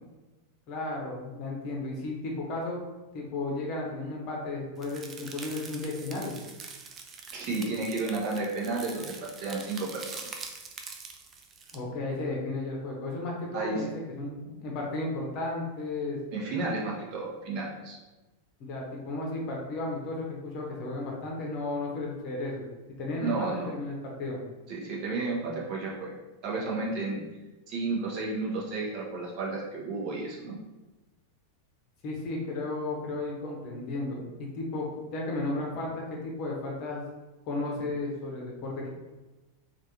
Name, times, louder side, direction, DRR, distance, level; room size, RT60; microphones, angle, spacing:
voice 1, 0.7-2.8 3.1-6.3 11.7-16.2 18.6-22.6 23.0-24.4 32.0-37.0 37.4-38.9, left 2 dB, 40° left, -2 dB, 0.8 m, -34 dB
sound 1, 4.8-11.8, right 5 dB, 25° right, 0.4 m, -44 dB
voice 2, 7.3-9.1 9.4-10.4 13.5-13.8 16.3-18.0 23.2-23.7 24.7-26.1 26.4-27.2 27.7-30.6, right 3 dB, 40° right, -3 dB, 0.8 m, -32 dB
3.3 x 2.6 x 2.8 m, 1.1 s
figure-of-eight pair, 90°, 0 cm